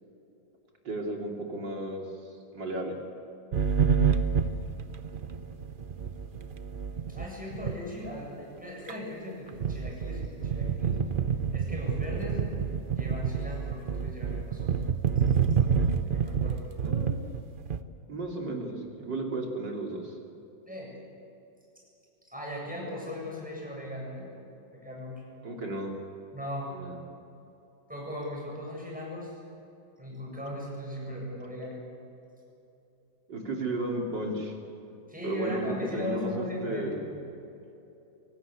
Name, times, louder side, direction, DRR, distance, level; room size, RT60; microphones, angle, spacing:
voice 1, 0.8-2.1 2.5-2.9 16.8-17.2 18.1-20.2 25.4-25.9 26.7-27.0 33.3-34.5 35.2-37.0, right 1 dB, 70° right, 1 dB, 3.8 m, -34 dB
sound 1, 3.5-7.3 7.5-7.7 8.0-8.2 8.6-8.7 8.9-9.0 9.5-17.8, right 6 dB, 50° right, 0.6 m, -28 dB
voice 2, 7.1-11.0 11.5-12.4 12.9-14.7 16.0-16.6 20.7-20.9 22.3-24.3 24.7-25.2 26.3-26.7 27.9-29.3 30.0-31.8 35.1-37.2, equal, 5° right, -3 dB, 7.7 m, -38 dB
24.5 x 18.0 x 8.3 m, 3.0 s
omnidirectional pair, 2.0 m